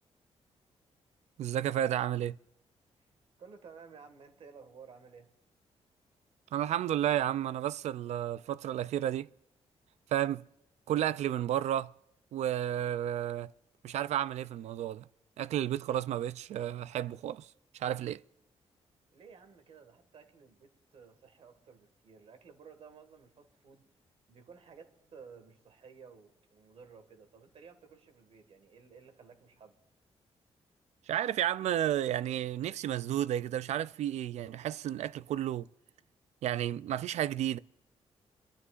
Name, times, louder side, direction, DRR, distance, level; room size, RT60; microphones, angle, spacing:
voice 1, 1.4-2.4 6.5-9.3 10.1-10.4 10.9-11.9 12.3-13.5 13.8-15.1 15.4-17.5 17.7-18.2 31.1-35.7 36.4-37.6, right 11 dB, 80° right, 0.4 m, -32 dB
voice 2, 3.4-5.3 19.1-23.8 24.3-29.8, right 5 dB, 60° right, 1.8 m, -54 dB
24.0 x 12.5 x 2.5 m
wide cardioid pair, 140°, 11 cm